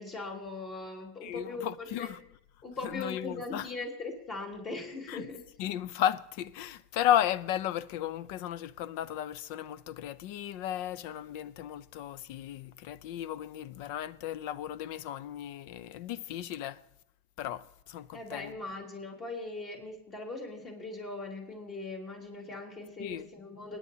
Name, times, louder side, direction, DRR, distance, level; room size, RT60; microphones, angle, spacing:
voice 1, 0.0-2.1 2.6-5.4 18.1-23.8, left 3 dB, 35° left, 3.7 m, -40 dB
voice 2, 1.2-2.2 2.8-3.7 5.1-5.3 5.6-16.8 17.4-18.5 23.0-23.3, left 11 dB, 60° left, 0.5 m, -34 dB
29.0 x 9.9 x 2.8 m
supercardioid pair, 120°, 0 cm